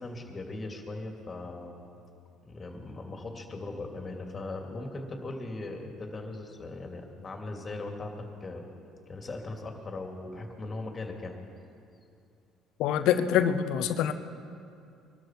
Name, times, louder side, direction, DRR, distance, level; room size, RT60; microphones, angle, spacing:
voice 1, 0.0-1.9 2.4-8.7 9.1-11.4, left 2 dB, 35° left, 2 dB, 2.6 m, -39 dB
voice 2, 12.8-14.1, left 9 dB, 75° left, 11 dB, 0.8 m, -25 dB
22.5 x 13.0 x 4.6 m, 2.5 s
supercardioid pair, 70°, 0 cm